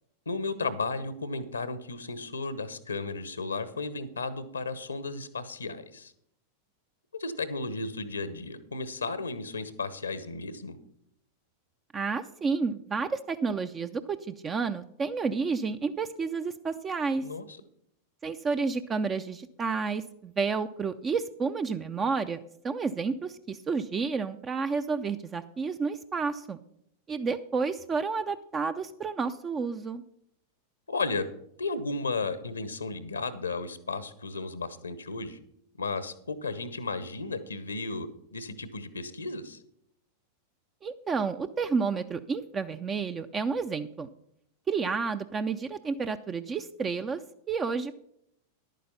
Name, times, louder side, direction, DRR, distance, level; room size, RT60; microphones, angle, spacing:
voice 1, 0.3-6.1 7.1-10.8 17.2-17.4 30.9-31.3 31.6-35.4 35.8-39.6, left 3 dB, 75° left, 15 dB, 1.0 m, -34 dB
voice 2, 11.9-17.2 18.2-22.4 22.6-26.6 27.1-30.0 40.8-44.1 44.7-47.2 47.5-47.9, right 5 dB, 20° right, 10 dB, 0.5 m, -30 dB
11.0 x 9.2 x 5.5 m, 0.71 s
figure-of-eight pair, 90°, 0 cm